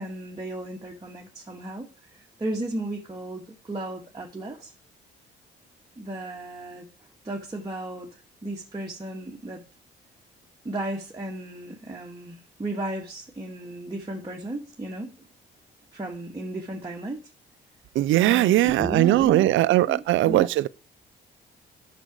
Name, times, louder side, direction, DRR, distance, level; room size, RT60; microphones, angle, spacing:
voice 1, 0.0-1.9 2.1-4.7 6.0-6.9 7.2-9.6 10.6-15.3 15.9-17.2 18.2-20.5, right 1 dB, 20° right, 1.9 m, -34 dB
voice 2, 18.0-20.7, right 15 dB, 80° right, 0.5 m, -20 dB
9.0 x 6.5 x 6.2 m
cardioid pair, 90°, 20 cm